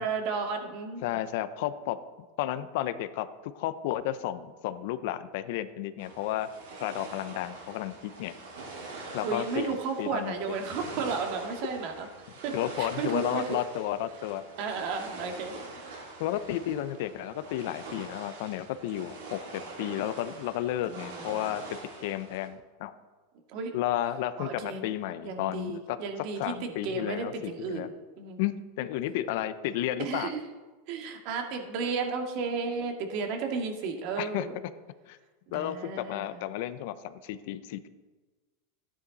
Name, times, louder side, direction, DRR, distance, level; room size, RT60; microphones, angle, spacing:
voice 1, 0.0-1.2 9.2-12.1 12.4-13.6 14.6-15.9 20.9-21.2 23.5-23.7 24.4-24.8 25.2-28.4 30.0-30.4 30.9-34.6 35.5-36.4, right 5 dB, 55° right, 4 dB, 2.0 m, -33 dB
voice 2, 1.0-2.0 2.4-6.5 6.8-8.4 9.1-10.6 12.5-14.4 16.2-22.9 23.7-26.0 26.4-27.9 28.4-30.3 34.2-34.5 35.1-35.2 35.5-37.9, left 12 dB, 65° left, 13 dB, 0.7 m, -32 dB
sound 1, 6.0-22.5, right 3 dB, 85° right, 4.4 m, -44 dB
13.0 x 10.0 x 4.1 m, 1.3 s
supercardioid pair, 125°, 0 cm